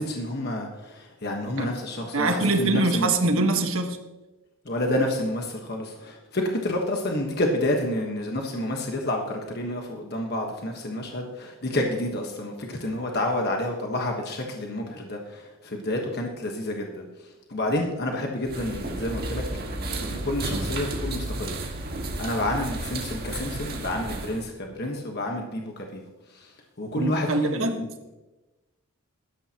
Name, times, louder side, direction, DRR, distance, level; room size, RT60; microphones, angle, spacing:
voice 1, 0.0-3.1 4.6-17.1 17.5-21.6 22.2-26.0 26.3-26.5 26.8-27.9, left 1 dB, 45° left, 1 dB, 1.3 m, -29 dB
voice 2, 2.1-4.0 27.0-27.8, right 2 dB, 65° right, 5 dB, 1.4 m, -24 dB
sound 1, 18.5-24.4, right 2 dB, 45° right, 1.7 m, -32 dB
16.5 x 13.0 x 2.9 m, 1.1 s
head